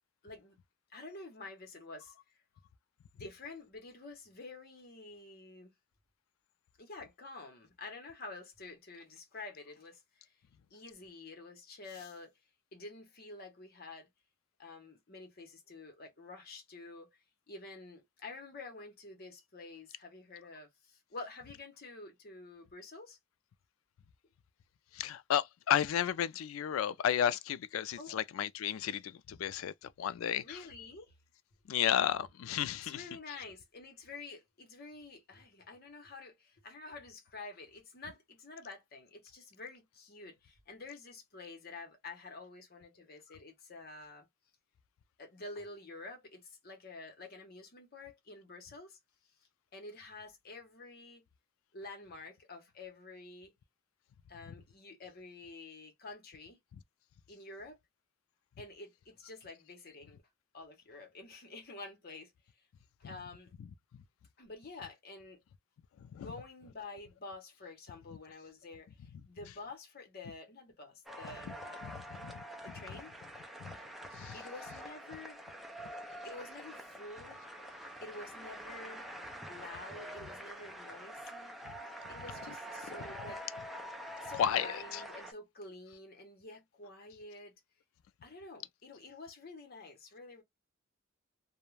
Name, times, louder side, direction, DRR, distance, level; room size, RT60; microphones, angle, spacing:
voice 1, 0.2-0.6 0.9-2.1 3.1-5.7 6.8-10.3 10.7-12.3 12.7-14.1 14.6-17.1 17.5-23.2 28.0-28.2 30.4-31.1 32.7-44.3 45.2-49.0 49.7-51.2 51.7-53.5 54.3-56.6 57.3-57.8 58.6-60.2 60.5-62.3 63.0-63.5 64.4-65.4 66.1-71.8 72.6-73.1 74.3-75.4 76.2-77.4 78.0-79.1 79.5-81.6 82.1-83.4 84.2-87.6 88.2-90.4, left 3 dB, 50° left, 0.8 m, -49 dB
voice 2, 25.0-30.6 31.7-33.0 66.1-66.3 71.8-72.3 73.6-73.7 74.1-74.4 82.9-83.0 84.4-85.0, left 9 dB, 85° left, 0.3 m, -33 dB
sound 1, 71.1-85.3, equal, ahead, 0.4 m, -46 dB
2.3 x 2.1 x 3.1 m
head